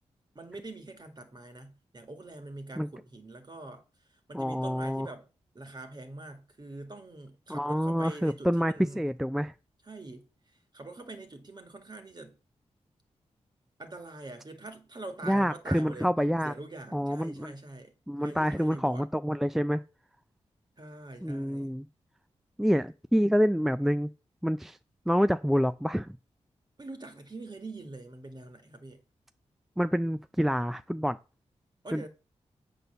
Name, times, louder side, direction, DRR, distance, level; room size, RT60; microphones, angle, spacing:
voice 1, 0.4-3.8 4.3-5.3 5.5-9.0 9.9-10.3 10.7-12.4 13.8-16.1 16.4-17.9 18.2-19.1 20.8-21.7 26.8-29.0 31.8-32.1, right 2 dB, 35° right, 1.9 m, -44 dB
voice 2, 4.3-5.1 7.5-9.5 15.2-16.5 16.9-17.5 18.1-19.8 21.2-21.9 22.6-24.1 24.4-24.8 25.1-26.2 29.8-31.2 31.9-32.1, equal, ahead, 0.4 m, -27 dB
8.0 x 4.0 x 6.7 m
cardioid pair, 60°, 12 cm